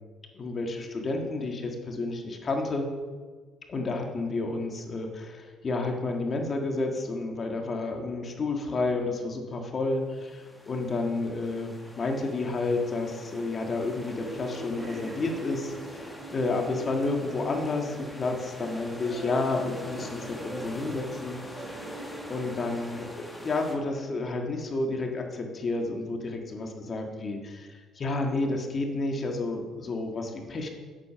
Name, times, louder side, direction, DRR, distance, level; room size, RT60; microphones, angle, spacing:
voice 1, 0.3-2.9 3.7-11.7 12.0-21.8 22.3-30.7, left 3 dB, 35° left, 2 dB, 1.7 m, -31 dB
sound 1, 10.0-23.8, left 1 dB, 10° left, 1.5 m, -46 dB
sound 2, 14.2-23.0, right 2 dB, 25° right, 2.5 m, -42 dB
8.7 x 8.3 x 5.7 m, 1.5 s
cardioid pair, 115°, 0 cm